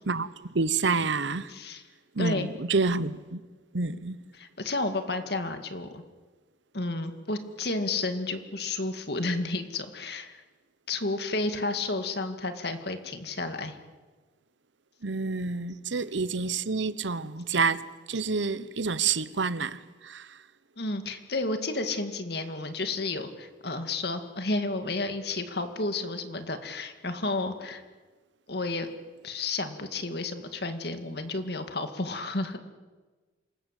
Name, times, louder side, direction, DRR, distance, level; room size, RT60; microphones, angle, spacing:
voice 1, 0.5-1.5 2.2-3.4 3.7-4.2 15.0-17.8 18.1-20.3, right 4 dB, 75° right, 0.9 m, -28 dB
voice 2, 1.5-1.8 2.2-2.5 4.3-6.0 6.7-10.4 10.9-13.8 20.8-27.8 28.5-28.9 29.2-32.6, left 2 dB, 55° left, 2.1 m, -31 dB
27.0 x 19.5 x 8.2 m
head